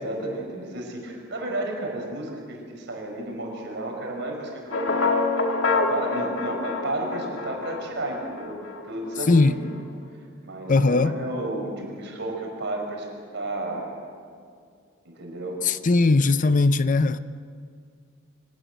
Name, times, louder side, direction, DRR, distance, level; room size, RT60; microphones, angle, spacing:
voice 1, 0.0-5.0 5.7-9.6 10.4-13.9 15.0-15.6 16.0-16.2, right 1 dB, 65° right, 5.6 m, -32 dB
sound 1, 4.7-8.9, left 3 dB, 75° left, 2.1 m, -26 dB
voice 2, 9.3-9.6 10.7-11.1 15.6-17.2, left 3 dB, 40° left, 0.6 m, -19 dB
24.5 x 17.5 x 8.2 m
head